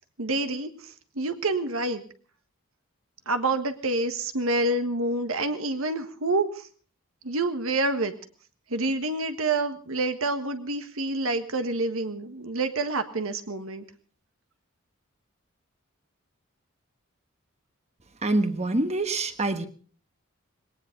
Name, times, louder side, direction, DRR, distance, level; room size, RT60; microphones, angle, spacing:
voice 1, 0.2-2.0 3.2-6.7 7.2-8.1 8.7-13.8, right 2 dB, 75° right, 8 dB, 1.5 m, -27 dB
voice 2, 18.2-19.7, right 2 dB, 30° right, 9 dB, 1.3 m, -25 dB
20.0 x 18.5 x 3.8 m, 0.43 s
head